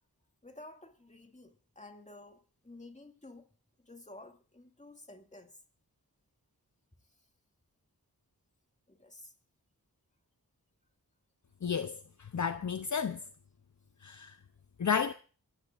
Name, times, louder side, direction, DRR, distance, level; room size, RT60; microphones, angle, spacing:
voice 1, 0.4-3.5 3.8-5.6 8.9-9.3, left 2 dB, 20° left, 2.2 m, -52 dB
voice 2, 11.6-13.2 14.0-14.4 14.8-15.1, left 6 dB, 50° left, 0.7 m, -32 dB
27.5 x 15.0 x 2.5 m
wide cardioid pair, 55°, 38 cm